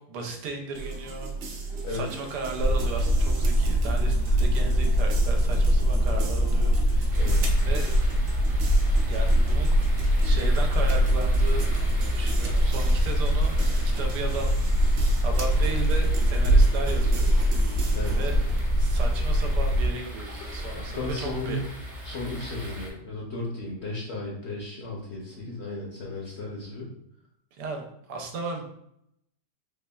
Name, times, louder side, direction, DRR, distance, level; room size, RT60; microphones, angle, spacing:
voice 1, 0.1-1.3 1.6-7.9 9.1-9.8 10.2-13.5 14.0-14.6 15.2-17.3 18.1-21.6 27.6-28.7, right 3 dB, 90° right, 3 dB, 1.2 m, -35 dB
sound 1, 0.7-18.7, right 3 dB, 65° right, 0.7 m, -38 dB
sound 2, 2.6-19.9, equal, 80° left, 1.5 m, -23 dB
sound 3, 7.1-22.9, equal, 15° right, 0.6 m, -38 dB
voice 2, 20.7-21.6 22.0-26.9, left 2 dB, 60° left, -3 dB, 0.7 m, -34 dB
4.1 x 3.1 x 2.2 m, 0.75 s
omnidirectional pair, 1.8 m